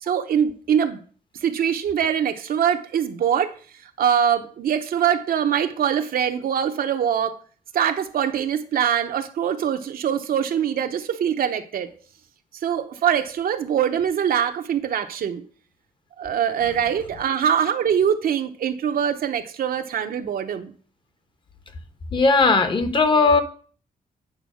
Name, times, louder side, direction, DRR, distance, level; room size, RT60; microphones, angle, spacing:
voice 1, 0.0-1.0 1.4-3.5 4.0-7.4 7.7-11.9 12.6-15.4 16.2-20.7, right 8 dB, 75° right, 7 dB, 0.9 m, -23 dB
voice 2, 22.1-23.4, left 3 dB, 35° left, 9 dB, 1.0 m, -17 dB
8.9 x 4.6 x 6.3 m, 0.42 s
wide cardioid pair, 170°, 15 cm